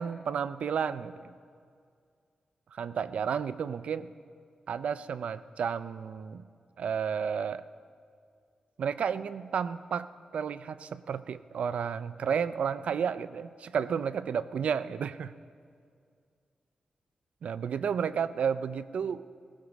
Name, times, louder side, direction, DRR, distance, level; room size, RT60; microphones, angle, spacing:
voice 1, 0.0-1.3 2.7-4.1 4.7-6.5 6.8-7.7 8.8-15.3 17.4-19.2, right 7 dB, 75° right, 14 dB, 0.4 m, -32 dB
18.0 x 15.5 x 4.1 m, 2.3 s
wide cardioid pair, 130°, 2 cm